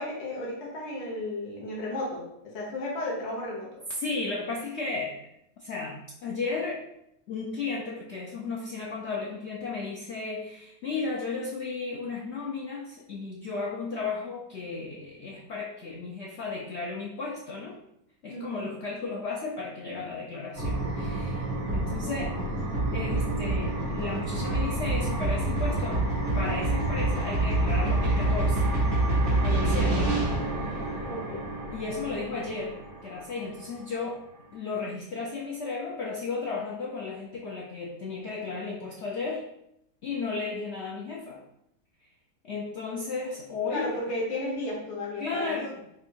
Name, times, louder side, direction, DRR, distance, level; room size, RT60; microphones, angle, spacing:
voice 1, 0.0-3.8 18.3-18.6 31.0-31.4 43.7-45.6, left 1 dB, 45° left, -4 dB, 1.2 m, -34 dB
voice 2, 4.0-5.2 5.6-6.8 7.3-17.8 18.2-22.4 22.9-26.0 26.3-28.6 29.4-30.1 30.5-31.0 31.7-34.2 34.5-39.4 40.0-41.4 42.4-43.9 45.2-45.8, left 4 dB, 85° left, -2 dB, 0.6 m, -34 dB
sound 1, 20.5-33.3, right 2 dB, 35° right, 1.3 m, -27 dB
3.7 x 2.5 x 4.4 m, 0.79 s
omnidirectional pair, 1.8 m